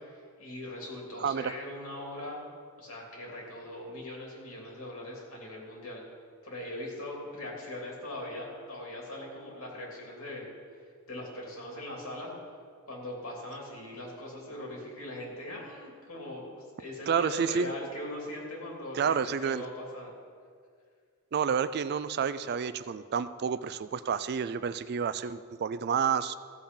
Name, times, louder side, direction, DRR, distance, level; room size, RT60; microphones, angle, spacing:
voice 1, 0.0-2.4 2.8-6.0 6.4-10.5 11.1-12.3 12.9-20.1, left 1 dB, 70° left, -2 dB, 2.9 m, -40 dB
voice 2, 1.2-1.5 17.1-17.7 18.9-19.6 21.3-26.4, right 6 dB, 45° right, 14 dB, 0.3 m, -29 dB
15.5 x 7.1 x 5.4 m, 2.1 s
head